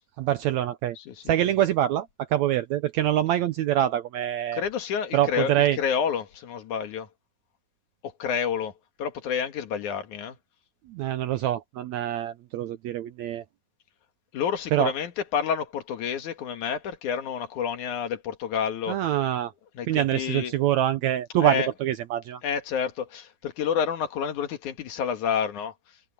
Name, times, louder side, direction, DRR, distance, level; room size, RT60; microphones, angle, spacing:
voice 1, 0.2-1.0 1.3-4.6 5.1-5.8 10.9-13.4 14.7-14.9 18.9-19.5 19.9-22.4, right 12 dB, 75° right, 1.8 m, -25 dB
voice 2, 1.0-1.3 4.5-7.1 8.0-8.7 9.0-10.4 14.3-19.0 19.7-20.5 21.4-21.7 22.4-25.7, left 7 dB, 70° left, 3.1 m, -29 dB
omnidirectional pair, 3.7 m